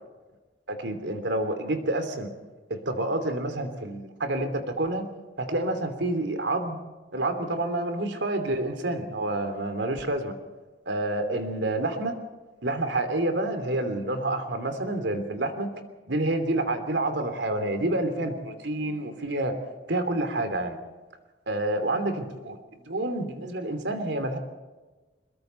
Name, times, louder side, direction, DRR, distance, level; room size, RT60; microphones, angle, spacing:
voice 1, 0.7-2.3 2.7-5.1 5.4-6.8 7.1-10.3 10.9-12.2 12.6-15.7 16.1-19.6 19.9-20.8 21.5-22.6 22.9-24.4, right 2 dB, 85° right, 8 dB, 2.9 m, -28 dB
26.0 x 22.0 x 4.5 m, 1.2 s
head